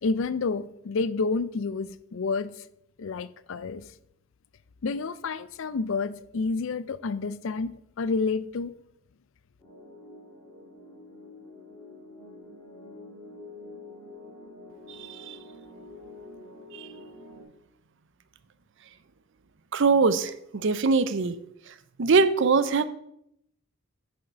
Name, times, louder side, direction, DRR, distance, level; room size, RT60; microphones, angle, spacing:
voice 1, 0.0-2.5 3.0-3.9 4.8-8.7, left 4 dB, 60° left, 0.4 m, -29 dB
sound 1, 9.6-17.4, left 2 dB, 15° left, 3.8 m, -47 dB
voice 2, 15.0-15.4 16.7-16.9 19.7-20.3 20.6-21.4 22.0-22.8, right 4 dB, 55° right, 0.5 m, -22 dB
7.4 x 5.5 x 5.6 m
head